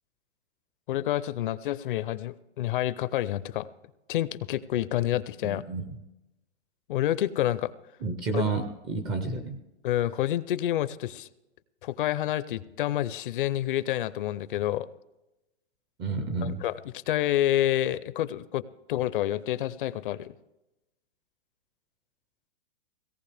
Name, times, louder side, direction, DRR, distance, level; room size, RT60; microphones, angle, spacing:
voice 1, 0.9-3.7 4.1-5.6 6.9-7.7 8.3-8.4 9.8-11.3 11.8-14.9 16.4-16.7 17.1-20.3, left 13 dB, 50° left, 16 dB, 0.5 m, -28 dB
voice 2, 5.4-5.8 8.0-9.6 16.0-16.6, right 3 dB, 15° right, 8 dB, 0.4 m, -30 dB
17.5 x 16.5 x 3.4 m, 0.97 s
hypercardioid pair, 150°, 34 cm